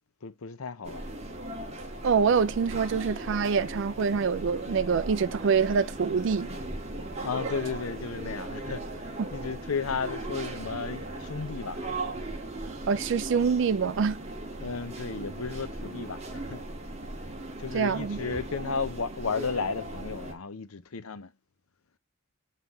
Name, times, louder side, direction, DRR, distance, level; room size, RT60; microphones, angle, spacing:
voice 1, 0.2-1.0 7.2-12.2 14.6-16.6 17.6-21.3, left 5 dB, 85° left, 0.7 m, -34 dB
sound 1, 0.8-20.3, right 2 dB, 30° right, 1.9 m, -38 dB
voice 2, 2.0-6.5 9.2-9.3 12.9-14.2 17.7-18.2, right 6 dB, 60° right, 0.4 m, -25 dB
7.5 x 5.6 x 3.1 m
head